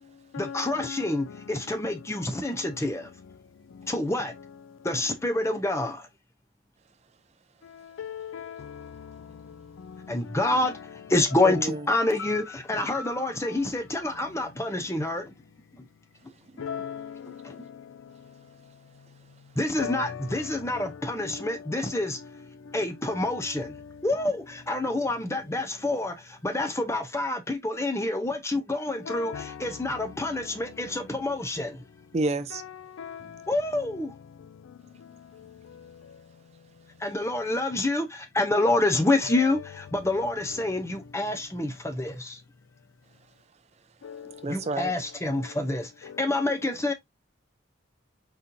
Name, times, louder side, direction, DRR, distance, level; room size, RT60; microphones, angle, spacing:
voice 1, 0.4-3.1 3.9-4.3 4.8-6.1 10.1-10.8 11.1-15.3 17.4-17.5 19.6-22.2 22.7-23.8 24.0-31.8 33.5-34.1 37.0-42.4 44.5-46.9, left 2 dB, 15° left, 0.6 m, -27 dB
voice 2, 8.0-8.5 12.9-13.0 16.6-17.1 19.8-20.0 29.1-29.4 33.0-33.2 44.1-44.2, left 8 dB, 85° left, 0.4 m, -35 dB
voice 3, 11.4-11.8 32.1-32.6 44.4-44.9, right 2 dB, 30° right, 0.4 m, -28 dB
4.2 x 3.9 x 2.7 m
head